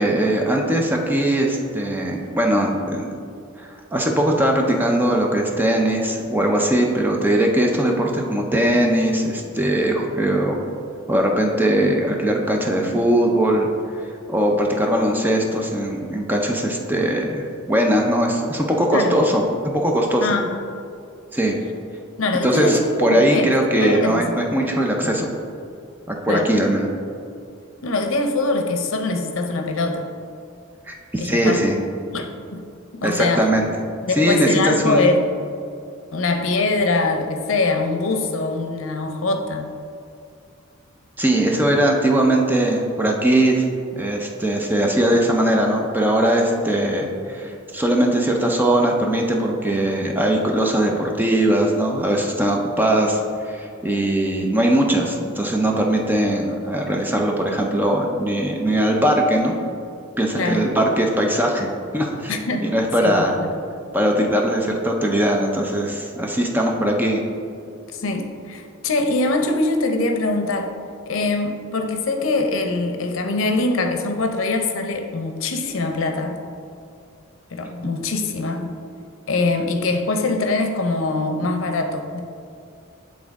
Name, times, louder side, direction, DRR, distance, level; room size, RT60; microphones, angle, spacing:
voice 1, 0.0-3.1 3.6-10.6 11.1-13.7 13.9-20.3 21.3-21.6 22.4-25.3 26.1-26.9 30.9-31.8 33.0-33.7 34.2-35.2 41.2-43.6 43.9-53.2 53.4-59.6 60.2-62.3 62.6-63.4 63.9-67.2, right 1 dB, 10° right, 0 dB, 0.5 m, -20 dB
voice 2, 22.2-23.5 23.8-24.3 25.0-25.3 26.3-26.5 27.8-30.1 31.2-31.6 32.1-32.6 32.9-33.5 34.0-35.3 36.1-39.7 60.4-60.7 62.3-62.7 63.0-63.5 67.6-70.7 71.1-76.4 77.5-78.7 79.3-82.2, left 3 dB, 75° left, 4 dB, 0.6 m, -23 dB
8.5 x 3.7 x 3.5 m, 2.5 s
head